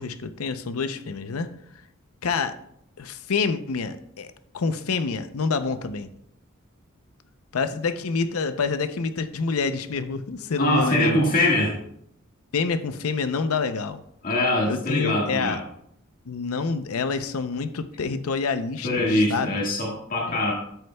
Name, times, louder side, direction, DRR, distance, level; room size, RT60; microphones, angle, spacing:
voice 1, 0.0-1.5 2.2-2.6 3.0-4.3 4.5-6.1 7.5-11.2 12.5-14.0 14.7-15.6 16.3-19.5 20.3-20.5, left 4 dB, 80° left, 10 dB, 0.6 m, -27 dB
voice 2, 10.6-11.7 14.2-15.6 18.8-20.5, left 1 dB, 40° left, -2 dB, 1.7 m, -23 dB
13.0 x 6.4 x 2.3 m, 0.72 s
head